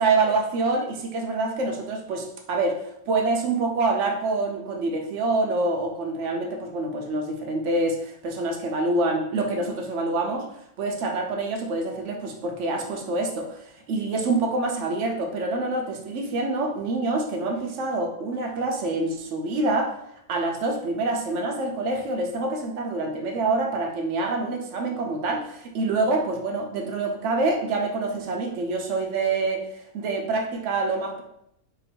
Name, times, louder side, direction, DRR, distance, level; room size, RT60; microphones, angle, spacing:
voice 1, 0.0-10.5 10.8-19.9 20.3-31.2, right 3 dB, 60° right, 2 dB, 0.8 m, -26 dB
3.0 x 2.6 x 4.1 m, 0.77 s
omnidirectional pair, 1.6 m